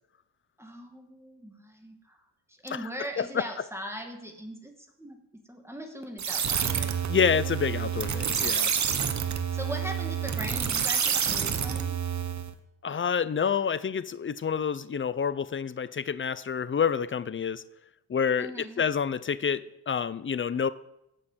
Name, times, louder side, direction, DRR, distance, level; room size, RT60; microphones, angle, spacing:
voice 1, 0.6-2.2 2.5-5.2 5.5-7.0 9.5-12.0 18.4-18.8, equal, 5° right, 2 dB, 2.3 m, -40 dB
sound 1, 6.2-12.5, right 7 dB, 35° right, 1.4 m, -28 dB
voice 2, 7.1-8.7 12.8-17.6 18.1-18.5 18.8-20.7, left 7 dB, 25° left, 16 dB, 0.7 m, -28 dB
16.5 x 6.6 x 7.5 m, 0.83 s
cardioid pair, 105°, 46 cm